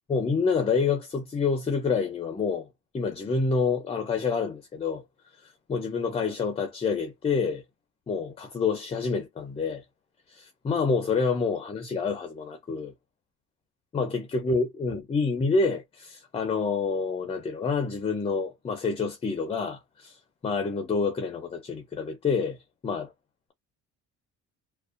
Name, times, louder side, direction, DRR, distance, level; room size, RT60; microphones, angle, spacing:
voice 1, 0.1-2.7 2.9-5.0 5.7-7.6 8.1-9.8 10.3-12.9 13.9-20.2 20.4-22.6 22.8-23.1, left 4 dB, 20° left, 0.4 m, -27 dB
2.5 x 2.1 x 2.3 m
cardioid pair, 155°, 30 cm